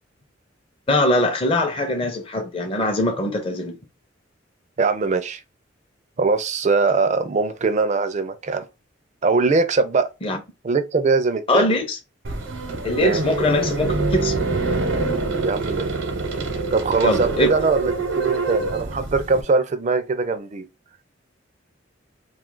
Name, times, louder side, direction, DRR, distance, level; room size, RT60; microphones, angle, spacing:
voice 1, 0.9-3.8 10.2-10.4 11.5-12.0 12.8-14.4 17.0-17.5, left 1 dB, 30° left, 0.5 m, -22 dB
voice 2, 4.8-5.4 6.2-8.7 9.2-10.1 10.6-11.7 13.0-13.2 15.4-15.9 16.7-20.7, right 4 dB, 35° right, 0.4 m, -21 dB
sound 1, 12.2-19.4, right 3 dB, 85° right, 0.8 m, -25 dB
2.7 x 2.4 x 3.7 m
head